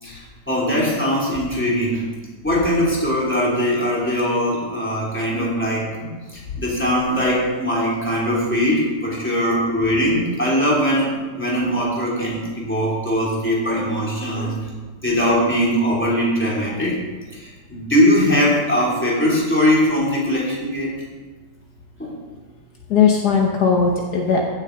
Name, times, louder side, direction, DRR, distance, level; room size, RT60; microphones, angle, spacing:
voice 1, 0.0-2.0 2.4-14.5 15.0-16.9 17.3-20.9 22.0-22.1, equal, 5° left, -6 dB, 2.8 m, -21 dB
voice 2, 22.9-24.4, left 6 dB, 65° left, 1 dB, 1.4 m, -18 dB
15.5 x 6.6 x 3.9 m, 1.4 s
omnidirectional pair, 1.9 m